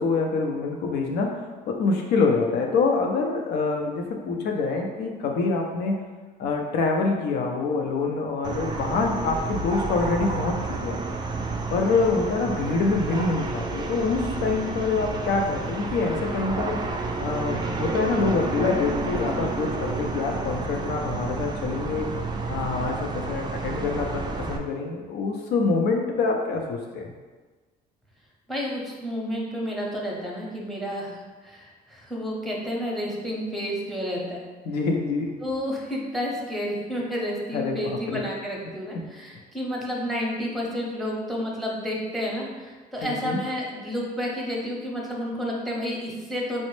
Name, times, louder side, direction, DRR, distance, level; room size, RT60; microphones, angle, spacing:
voice 1, 0.0-1.4 1.6-6.0 6.4-11.0 11.7-16.8 17.2-22.1 22.5-27.1 34.7-35.4 37.5-38.2 43.0-43.4, left 4 dB, 75° left, 2 dB, 0.6 m, -26 dB
sound 1, 8.4-24.6, right 3 dB, 25° right, 0.3 m, -30 dB
voice 2, 28.5-34.5 35.4-46.6, equal, ahead, -3 dB, 0.7 m, -30 dB
4.2 x 2.0 x 3.1 m, 1.3 s
cardioid pair, 110°, 17 cm